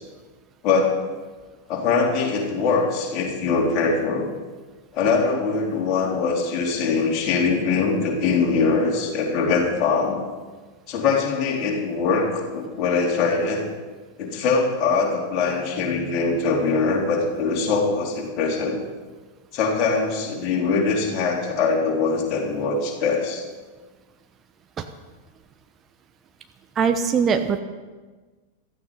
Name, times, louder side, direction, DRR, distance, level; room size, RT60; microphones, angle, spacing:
voice 1, 0.6-1.0 1.7-4.3 4.9-10.2 10.9-13.7 14.2-18.8 19.5-23.4, left 4 dB, 40° left, -1 dB, 3.7 m, -22 dB
voice 2, 26.8-27.6, right 6 dB, 25° right, 8 dB, 1.0 m, -21 dB
16.0 x 14.0 x 5.5 m, 1.3 s
figure-of-eight pair, 90°, 0 cm